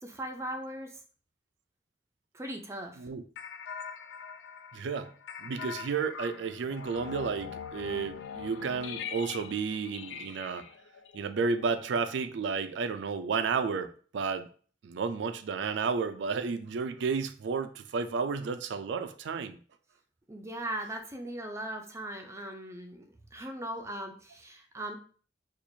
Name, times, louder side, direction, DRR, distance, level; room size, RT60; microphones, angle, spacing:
voice 1, 0.0-1.0 2.3-3.0 20.3-25.0, right 1 dB, 15° right, 5 dB, 0.4 m, -39 dB
sound 1, 3.4-12.3, left 7 dB, 80° left, 0.3 m, -43 dB
voice 2, 4.7-5.1 5.4-10.7 11.1-14.5 14.8-19.6, right 5 dB, 85° right, 10 dB, 0.4 m, -32 dB
4.4 x 2.4 x 2.7 m, 0.42 s
head